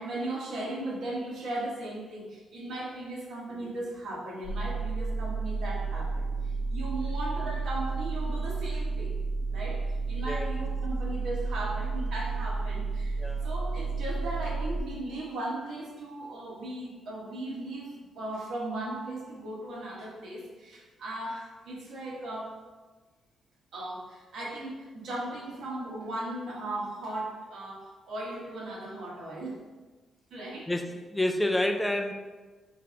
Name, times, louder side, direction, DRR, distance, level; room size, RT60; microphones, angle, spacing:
voice 1, 0.0-9.2 9.5-22.6 23.7-29.6 30.3-30.7, right 1 dB, 70° right, -4 dB, 1.2 m, -37 dB
sound 1, 4.4-14.8, right 3 dB, 30° left, 0.7 m, -31 dB
voice 2, 13.2-13.5 30.7-32.1, left 1 dB, 5° left, 4 dB, 0.3 m, -29 dB
3.4 x 3.2 x 3.7 m, 1.3 s
cardioid pair, 150°, 0 cm